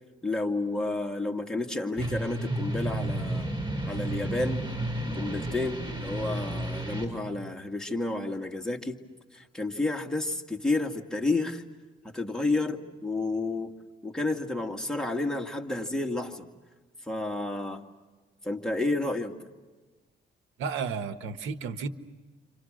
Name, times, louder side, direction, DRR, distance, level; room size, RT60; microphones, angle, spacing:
voice 1, 0.2-3.5 3.8-4.6 5.2-9.0 9.3-11.6 12.0-13.7 14.0-16.5 17.0-17.8 18.4-19.3, left 2 dB, 5° left, 2 dB, 2.1 m, -30 dB
sound 1, 2.0-7.1, right 1 dB, 25° right, 5.4 m, -32 dB
voice 2, 20.6-21.9, right 5 dB, 85° right, 10 dB, 1.3 m, -32 dB
29.5 x 26.5 x 6.4 m, 1.3 s
cardioid pair, 90°, 20 cm